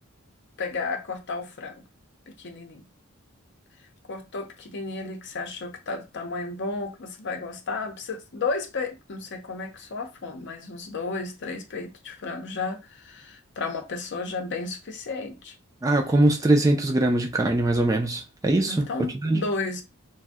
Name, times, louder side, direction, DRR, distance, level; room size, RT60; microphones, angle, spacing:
voice 1, 0.6-1.8 2.3-2.8 4.1-15.5 18.7-19.8, left 3 dB, 55° left, 0.6 m, -33 dB
voice 2, 15.8-19.4, right 1 dB, 15° right, 0.3 m, -22 dB
2.5 x 2.1 x 3.4 m
head